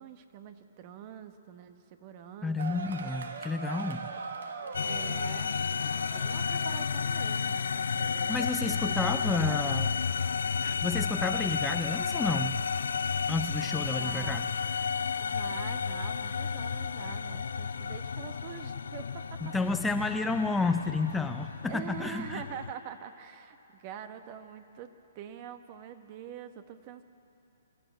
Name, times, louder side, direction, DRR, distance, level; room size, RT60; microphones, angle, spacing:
voice 1, 0.0-2.8 4.8-9.8 11.3-11.6 13.9-14.4 15.2-19.5 20.0-20.2 21.6-24.9 25.1-27.0, right 9 dB, 40° right, 9 dB, 1.3 m, -45 dB
voice 2, 2.4-4.1 8.3-9.9 10.6-12.6 13.3-14.5 19.4-22.4, left 3 dB, 5° left, 7 dB, 0.6 m, -31 dB
sound 1, 2.6-19.4, right 4 dB, 75° right, 1.6 m, -46 dB
sound 2, 4.7-22.7, left 6 dB, 80° left, 0.4 m, -32 dB
25.0 x 13.5 x 8.1 m, 2.8 s
hypercardioid pair, 140°, 0 cm